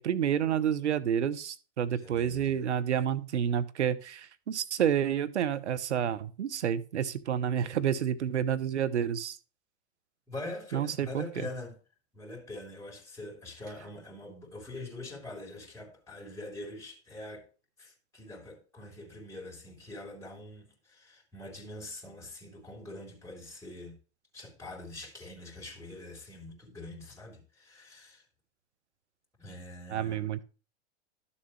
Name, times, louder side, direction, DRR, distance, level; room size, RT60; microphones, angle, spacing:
voice 1, 0.0-9.4 10.7-11.3 29.9-30.4, right 9 dB, 85° right, 0.9 m, -29 dB
voice 2, 1.9-2.7 7.6-7.7 10.3-11.8 12.1-17.4 17.8-24.0 24.3-28.2 29.4-30.3, left 2 dB, 10° left, 4.1 m, -44 dB
12.0 x 7.2 x 3.2 m
hypercardioid pair, 105°, 34 cm